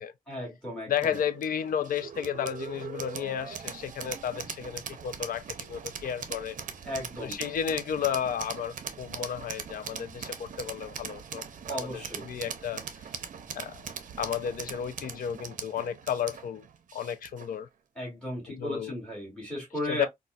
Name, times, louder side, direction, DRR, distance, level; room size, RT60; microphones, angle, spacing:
voice 1, 0.3-1.2 6.9-7.4 11.7-12.3 18.0-20.1, equal, 5° left, 2.2 m, -35 dB
voice 2, 0.9-6.6 7.2-12.8 13.5-13.8 14.2-16.6 16.9-17.7 18.6-18.9 19.9-20.1, left 8 dB, 75° left, 0.4 m, -33 dB
sound 1, 1.0-17.6, right 7 dB, 65° right, 0.5 m, -41 dB
4.0 x 2.3 x 2.3 m
wide cardioid pair, 135°, 15 cm